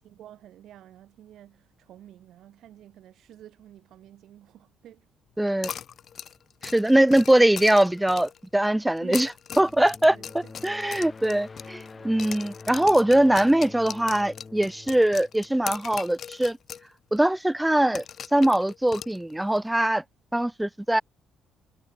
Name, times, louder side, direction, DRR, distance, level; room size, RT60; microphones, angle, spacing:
voice 1, 0.0-5.1 5.5-5.9 9.0-9.3 10.1-10.5 11.9-12.2, right 12 dB, 65° right, 2.1 m, -50 dB
voice 2, 5.4-5.7 6.6-9.3 9.6-16.6 17.1-18.0 18.3-20.0 20.3-21.0, right 1 dB, 5° right, 0.4 m, -22 dB
sound 1, 5.6-8.5 9.0-11.9 12.2-16.9 17.2-17.3 17.9-19.6, left 8 dB, 50° left, 1.0 m, -39 dB
sound 2, 9.5-16.2, left 4 dB, 25° left, 1.8 m, -46 dB
cardioid pair, 125°, 0 cm